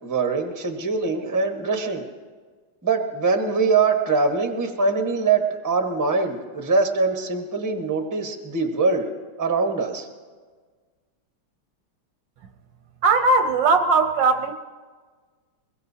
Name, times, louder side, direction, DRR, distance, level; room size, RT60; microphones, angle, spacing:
voice 1, 0.0-2.0 2.8-9.1 9.4-10.1, right 4 dB, 10° right, 3 dB, 0.9 m, -23 dB
voice 2, 13.0-14.5, right 3 dB, 70° right, 6 dB, 1.2 m, -19 dB
23.0 x 21.5 x 2.8 m, 1.5 s
omnidirectional pair, 2.3 m